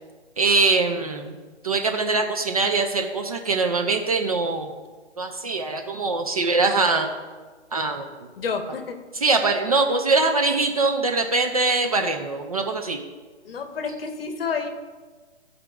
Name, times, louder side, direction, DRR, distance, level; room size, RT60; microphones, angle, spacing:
voice 1, 0.4-1.3 1.6-4.7 5.2-7.1 7.7-8.1 9.2-13.0, right 3 dB, 30° right, 4 dB, 0.4 m, -22 dB
voice 2, 8.4-9.0 13.4-14.7, left 5 dB, 55° left, 6 dB, 1.1 m, -29 dB
13.5 x 5.0 x 2.3 m, 1.4 s
figure-of-eight pair, 145°, 36 cm